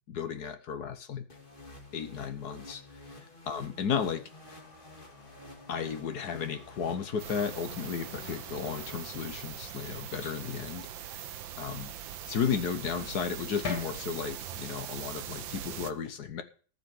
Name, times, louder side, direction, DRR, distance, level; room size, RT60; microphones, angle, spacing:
voice 1, 0.1-1.3 1.9-2.8 3.5-4.2 5.7-10.9 11.1-11.2 11.6-11.9 12.3-16.4, left 7 dB, 60° left, 9 dB, 1.5 m, -34 dB
sound 1, 1.3-9.5, left 3 dB, 25° left, 2.5 m, -50 dB
sound 2, 4.3-14.7, left 4 dB, 90° left, 3.3 m, -48 dB
sound 3, 7.2-15.9, right 10 dB, 80° right, 1.6 m, -42 dB
14.5 x 5.9 x 7.7 m, 0.41 s
omnidirectional pair, 2.1 m